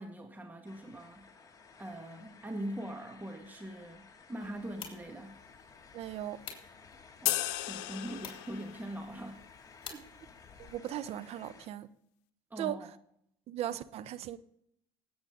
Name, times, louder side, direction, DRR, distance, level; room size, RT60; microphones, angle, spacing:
voice 1, 0.0-1.3 1.8-5.4 7.2-9.4 9.8-10.1 12.5-12.9, right 1 dB, 15° right, 2.0 m, -42 dB
sound 1, 0.6-11.7, left 5 dB, 30° left, 2.3 m, -56 dB
sound 2, 4.4-10.8, left 7 dB, 45° left, 3.8 m, -52 dB
voice 2, 5.9-6.4 10.6-11.9 12.6-12.8 13.5-14.4, right 12 dB, 60° right, 0.9 m, -37 dB
sound 3, 7.3-8.9, left 15 dB, 70° left, 0.9 m, -34 dB
19.0 x 8.8 x 3.9 m
supercardioid pair, 80°, 12 cm